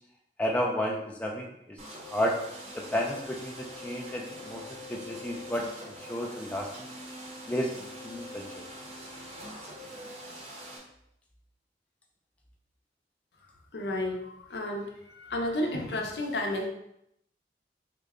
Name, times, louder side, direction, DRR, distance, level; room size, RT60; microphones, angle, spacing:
voice 1, 0.4-1.8 2.1-2.4 2.7-4.6 4.9-6.9 7.5-8.6, equal, 10° left, -1 dB, 0.4 m, -32 dB
sound 1, 1.8-10.8, equal, 40° right, 0.7 m, -44 dB
voice 2, 13.7-14.9 15.2-16.7, left 1 dB, 70° left, 2 dB, 0.6 m, -31 dB
3.8 x 2.1 x 3.5 m, 0.78 s
head